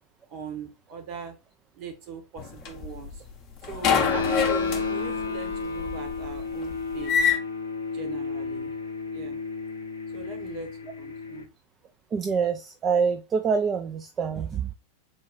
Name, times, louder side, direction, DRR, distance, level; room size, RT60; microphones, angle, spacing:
voice 1, 0.3-1.4 1.7-3.2 3.6-7.3 7.9-8.7 9.1-9.4 10.1-10.7 11.0-11.5, right 6 dB, 40° right, 1.1 m, -40 dB
sound 1, 2.4-3.3 3.6-7.4, left 7 dB, 35° left, 0.7 m, -26 dB
sound 2, 3.8-11.4, left 4 dB, 75° left, 0.6 m, -32 dB
voice 2, 12.1-14.7, right 6 dB, 25° right, 0.3 m, -26 dB
3.8 x 2.3 x 3.7 m
figure-of-eight pair, 90°, 0 cm